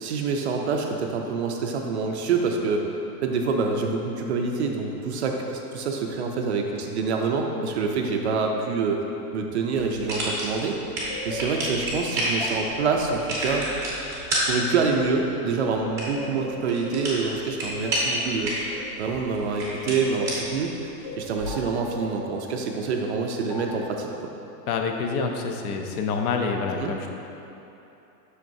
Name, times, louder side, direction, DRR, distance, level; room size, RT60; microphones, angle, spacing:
voice 1, 0.0-2.9 3.2-9.0 9.3-10.8 11.2-13.7 14.5-18.7 19.0-20.7 21.2-24.1 26.8-26.9, right 4 dB, 45° right, 2 dB, 0.5 m, -26 dB
sound 1, 9.7-21.6, right 1 dB, 5° right, 0.7 m, -31 dB
sound 2, 10.7-15.7 16.1-20.5 21.0-22.5 23.5-23.9, left 2 dB, 35° left, 0.4 m, -40 dB
voice 2, 24.7-27.1, left 4 dB, 65° left, 3 dB, 0.8 m, -27 dB
7.5 x 6.4 x 2.6 m, 2.9 s
supercardioid pair, 175°, 48 cm